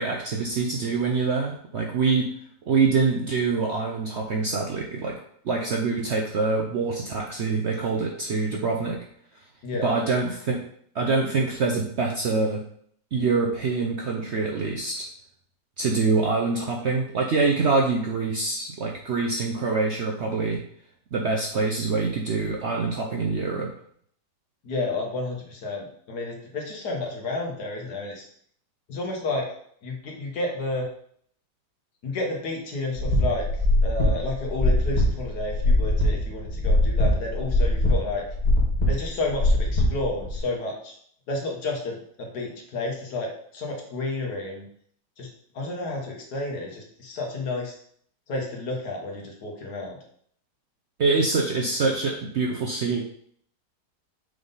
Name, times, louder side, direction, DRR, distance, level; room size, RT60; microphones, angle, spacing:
voice 1, 0.0-2.3 2.7-5.1 5.4-9.0 9.8-10.6 10.9-12.6 13.1-15.1 15.8-20.6 21.1-23.7 51.0-53.0, right 4 dB, 60° right, 0 dB, 0.7 m, -25 dB
voice 2, 24.6-28.3 28.9-29.5 29.8-30.9 32.0-38.2 38.9-41.0 41.3-44.7 45.2-45.3 45.5-47.8 48.3-50.0, left 2 dB, 70° left, 0 dB, 1.8 m, -31 dB
sound 1, 33.0-40.4, left 1 dB, 25° left, 1.5 m, -22 dB
6.4 x 3.7 x 4.0 m, 0.62 s
omnidirectional pair, 1.8 m